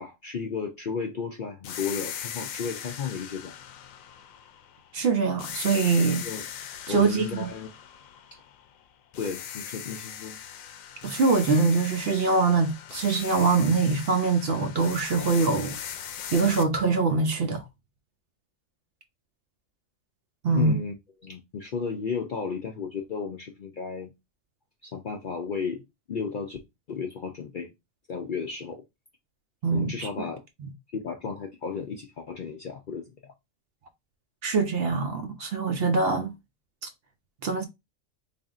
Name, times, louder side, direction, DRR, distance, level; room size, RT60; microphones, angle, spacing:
voice 1, 0.0-3.5 6.2-6.4 6.9-7.7 9.1-10.4 20.5-20.9 21.2-24.1 24.8-26.6 26.9-27.7 28.1-28.8 29.7-30.4 30.9-33.1, left 5 dB, 60° left, 0.5 m, -33 dB
sound 1, 1.6-4.9 5.4-8.8 9.1-16.6, left 9 dB, 90° left, 1.0 m, -39 dB
voice 2, 4.9-6.3 6.9-7.5 11.0-15.8 16.3-17.6 20.4-20.7 29.6-30.1 34.4-36.3 36.8-36.9 37.4-37.6, right 4 dB, 60° right, 0.7 m, -23 dB
4.0 x 3.3 x 2.4 m
omnidirectional pair, 1.4 m